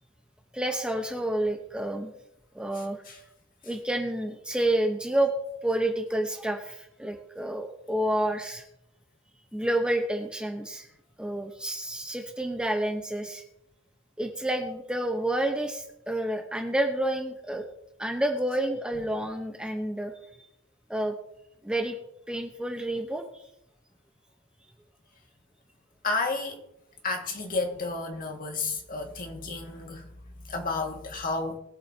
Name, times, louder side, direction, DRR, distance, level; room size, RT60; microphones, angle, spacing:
voice 1, 0.5-2.1 2.5-3.0 3.6-5.3 5.6-8.6 9.5-10.9 11.2-13.4 14.2-17.6 18.0-20.1 20.9-21.2 21.6-22.0 22.3-23.4, right 1 dB, 5° right, 0.9 m, -29 dB
voice 2, 26.0-26.6 27.0-30.1 30.4-31.6, left 3 dB, 45° left, 1.9 m, -31 dB
21.5 x 8.0 x 2.9 m
head